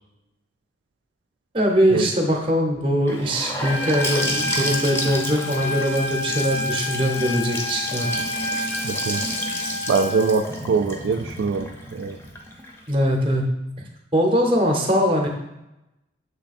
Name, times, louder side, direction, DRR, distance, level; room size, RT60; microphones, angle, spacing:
voice 1, 1.5-8.1 12.9-13.4 14.1-15.3, equal, 25° right, 1 dB, 0.7 m, -21 dB
Gurgling / Sink (filling or washing) / Bathtub (filling or washing), 3.1-12.9, left 1 dB, 10° left, 0.6 m, -31 dB
Trumpet, 3.6-10.3, left 1 dB, 80° left, 0.8 m, -30 dB
voice 2, 8.8-9.2 9.9-12.2, right 4 dB, 70° right, 6 dB, 0.3 m, -23 dB
7.0 x 3.2 x 4.1 m, 0.90 s
head